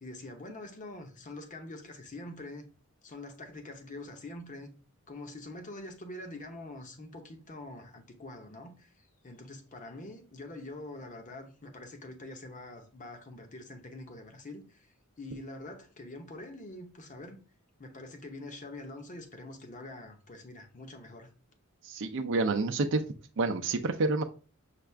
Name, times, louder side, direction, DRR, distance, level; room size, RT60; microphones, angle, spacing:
voice 1, 0.0-2.7 3.0-4.7 5.1-14.9 15.2-17.4 17.8-21.3, left 2 dB, 35° left, 0.8 m, -45 dB
voice 2, 21.8-23.0 23.4-24.2, right 3 dB, 60° right, 0.5 m, -28 dB
5.8 x 2.4 x 3.3 m
head